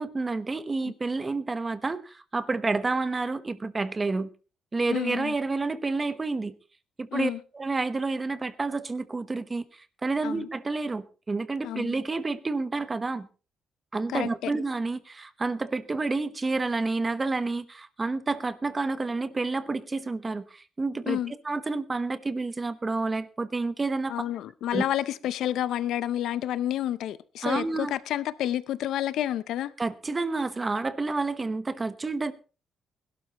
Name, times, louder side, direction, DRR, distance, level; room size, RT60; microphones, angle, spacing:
voice 1, 0.0-4.3 4.7-6.5 7.0-13.3 13.9-21.2 21.4-24.1 24.7-24.8 27.4-27.9 29.8-32.3, right 3 dB, 25° right, 1.0 m, -29 dB
voice 2, 4.9-5.3 7.1-7.4 10.2-10.5 11.6-12.0 14.1-14.5 21.1-21.3 24.1-29.7, left 12 dB, 85° left, 0.6 m, -29 dB
21.0 x 12.0 x 3.0 m
cardioid pair, 125°, 0 cm